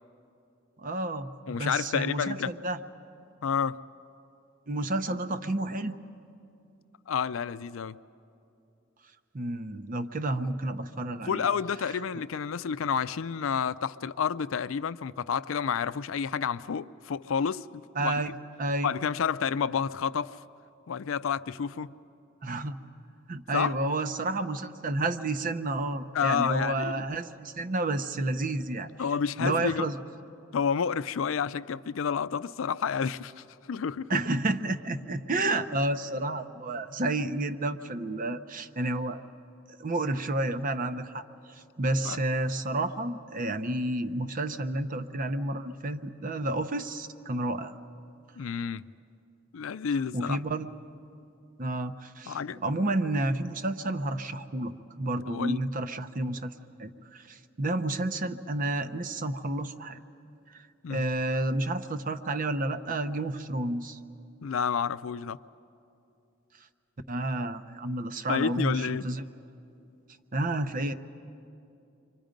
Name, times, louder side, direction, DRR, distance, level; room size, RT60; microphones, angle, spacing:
voice 1, 0.8-2.8 4.7-6.0 9.3-11.5 18.0-18.3 18.6-18.9 22.4-22.8 23.3-28.9 29.4-30.0 34.1-39.2 39.8-41.2 41.5-47.7 50.1-50.7 51.6-56.5 56.8-60.0 60.5-60.6 60.9-64.0 67.1-69.3 70.3-70.9, right 2 dB, 45° right, 0.7 m, -30 dB
voice 2, 1.5-2.5 3.4-3.8 7.1-8.0 11.3-18.3 18.8-20.4 20.9-21.9 23.5-23.7 26.1-27.1 29.0-29.9 30.5-34.2 42.0-42.2 48.4-48.9 49.5-50.4 52.3-52.6 55.3-55.6 60.8-61.1 64.4-65.4 68.3-69.1, left 6 dB, 85° left, 0.4 m, -30 dB
28.5 x 24.0 x 5.2 m
head